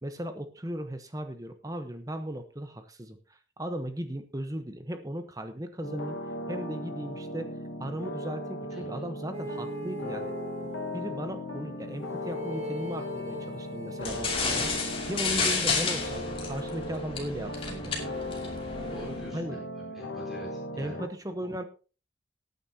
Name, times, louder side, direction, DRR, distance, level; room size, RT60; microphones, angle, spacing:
voice 1, 0.0-6.2 6.5-10.3 10.6-17.9 19.3-19.6 20.8-21.6, right 1 dB, 20° right, 8 dB, 0.9 m, -37 dB
sound 1, 5.8-21.1, left 1 dB, 85° left, 1.5 m, -37 dB
voice 2, 8.7-9.1 18.9-19.7 19.9-21.0 21.4-21.5, right 1 dB, ahead, -5 dB, 4.2 m, -45 dB
sound 2, 9.3-11.0 12.0-15.6, left 1 dB, 35° right, 2.2 m, -40 dB
sound 3, 14.0-19.3, left 4 dB, 30° left, 2.5 m, -31 dB
19.0 x 9.3 x 2.8 m, 0.35 s
head